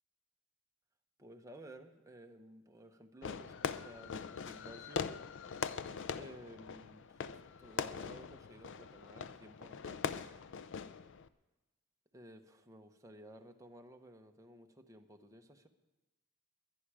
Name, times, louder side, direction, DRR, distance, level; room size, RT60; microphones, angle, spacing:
voice 1, 1.2-5.1 6.1-7.3 7.6-10.0 12.1-15.7, right 1 dB, 15° right, 4 dB, 1.0 m, -55 dB
Fireworks, 3.2-11.3, left 6 dB, 60° left, 0.5 m, -42 dB
21.5 x 10.0 x 4.9 m, 1.1 s
head